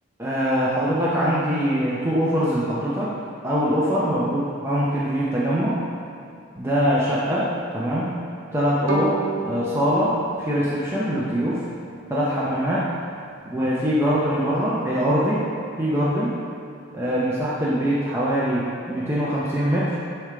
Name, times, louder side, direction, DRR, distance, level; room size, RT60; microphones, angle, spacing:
voice 1, 0.2-3.1 3.4-5.8 6.6-8.2 8.5-10.1 10.4-11.6 12.1-12.9 13.5-15.4 15.8-16.4 16.9-20.0, equal, 10° right, -8 dB, 0.7 m, -23 dB
Bowed string instrument, 8.9-11.9, right 2 dB, 75° right, 1.1 m, -32 dB
7.0 x 3.4 x 4.8 m, 2.6 s
head